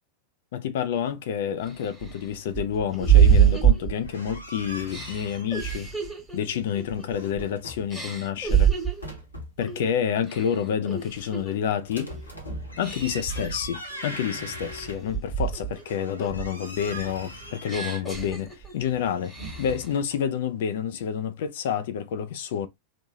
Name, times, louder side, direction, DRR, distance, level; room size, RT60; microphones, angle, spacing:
voice 1, 0.5-5.9 6.3-8.7 9.6-12.1 12.8-19.3 19.6-22.7, left 8 dB, 55° left, 0.5 m, -29 dB
sound 1, 1.0-1.1 1.7-4.4 4.9-7.5 7.9-9.1 9.6-9.9 10.2-11.5 11.9-12.3 12.8-13.4 13.9-15.8 16.2-18.9 19.2-19.9, right 9 dB, ahead, 1.5 m, -25 dB
sound 2, 4.0-6.1 6.4-7.9 8.4-9.6 11.9-15.3 15.7-20.2, right 1 dB, 85° left, 1.0 m, -40 dB
3.0 x 2.1 x 2.9 m
figure-of-eight pair, 90°, 0 cm